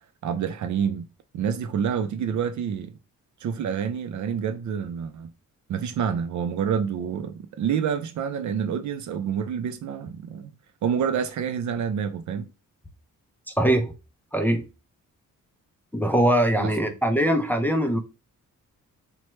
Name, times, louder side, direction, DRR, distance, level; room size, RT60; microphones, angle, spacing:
voice 1, 0.2-1.1 1.3-2.9 3.4-5.3 5.7-10.5 10.8-12.5 16.6-16.7, right 7 dB, 60° right, 0.5 m, -28 dB
voice 2, 13.6-13.9 14.3-14.7 15.9-18.0, right 1 dB, 5° left, 0.4 m, -22 dB
3.0 x 2.2 x 3.0 m
cardioid pair, 90°, 32 cm